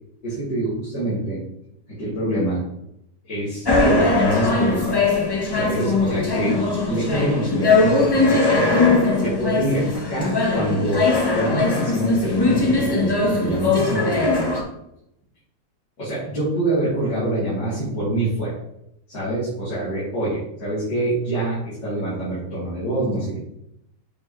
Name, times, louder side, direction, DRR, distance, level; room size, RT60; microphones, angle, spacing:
voice 1, 0.2-1.4 1.9-2.6 3.3-5.0 5.5-8.7 9.2-14.5 16.0-18.5 19.1-23.5, right 1 dB, 85° left, -12 dB, 3.4 m, -25 dB
sound 1, 3.7-14.6, left 3 dB, 40° left, 0.3 m, -20 dB
7.0 x 4.9 x 3.0 m, 0.79 s
omnidirectional pair, 1.9 m